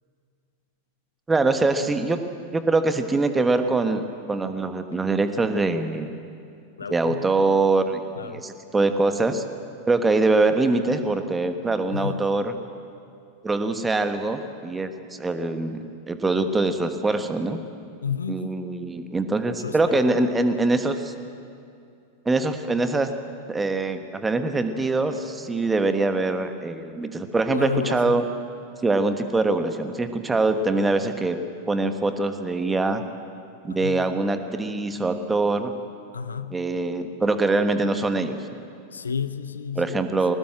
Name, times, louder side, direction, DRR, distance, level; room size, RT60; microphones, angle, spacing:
voice 1, 1.3-2.2 2.5-6.1 6.9-9.4 9.9-12.5 13.4-17.6 18.3-21.1 22.2-23.1 23.5-28.2 28.8-31.4 31.7-33.0 33.6-35.7 36.5-38.4 39.7-40.3, right 3 dB, 10° right, 8 dB, 1.3 m, -23 dB
voice 2, 6.8-7.2 8.2-8.4 11.9-12.2 18.0-18.5 19.6-19.7 27.5-28.2 33.7-34.0 36.1-36.6 38.9-40.0, left 7 dB, 75° left, 13 dB, 0.7 m, -31 dB
20.5 x 19.0 x 7.9 m, 2.5 s
figure-of-eight pair, 90°, 0 cm